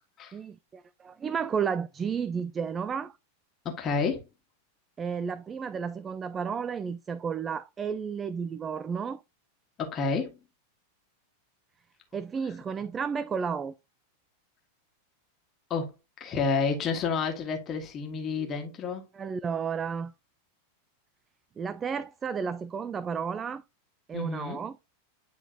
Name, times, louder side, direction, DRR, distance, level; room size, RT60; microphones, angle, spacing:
voice 1, 0.3-3.1 5.0-9.2 12.1-13.7 19.1-20.1 21.6-23.6 24.1-24.8, right 6 dB, 20° right, 0.3 m, -32 dB
voice 2, 3.7-4.2 9.8-10.4 15.7-19.0 24.1-24.6, left 5 dB, 30° left, 1.7 m, -30 dB
10.0 x 3.9 x 2.8 m
figure-of-eight pair, 90°, 0 cm